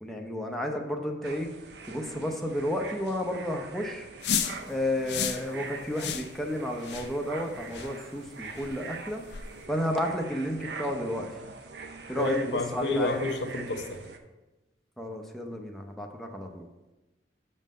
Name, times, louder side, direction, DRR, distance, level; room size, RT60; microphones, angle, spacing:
voice 1, 0.0-1.5 1.9-4.1 4.7-9.2 9.7-11.3 12.1-13.2 15.0-16.7, left 1 dB, ahead, 1 dB, 0.6 m, -32 dB
sound 1, 1.2-14.2, right 4 dB, 70° right, 0.7 m, -43 dB
sound 2, 4.2-4.6 5.1-5.4 6.0-6.3 6.8-7.1 7.7-7.9 8.6-8.7 9.3-9.5, left 8 dB, 70° left, 0.6 m, -31 dB
voice 2, 12.1-14.0, left 2 dB, 90° left, 4 dB, 0.9 m, -30 dB
6.2 x 5.6 x 5.4 m, 1.1 s
head